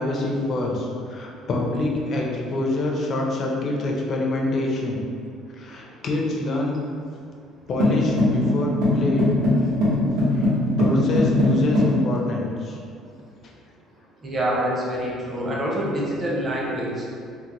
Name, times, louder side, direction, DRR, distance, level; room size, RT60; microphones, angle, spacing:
voice 1, 0.0-5.0 5.5-6.8 7.7-9.3 10.3-10.5 10.8-12.8, left 2 dB, 35° left, -1 dB, 0.4 m, -26 dB
sound 1, 7.8-12.0, left 1 dB, 90° right, 0.9 m, -20 dB
voice 2, 14.2-17.1, right 1 dB, 20° right, -5 dB, 0.5 m, -26 dB
3.7 x 2.0 x 2.9 m, 2.3 s
cardioid pair, 170°, 0 cm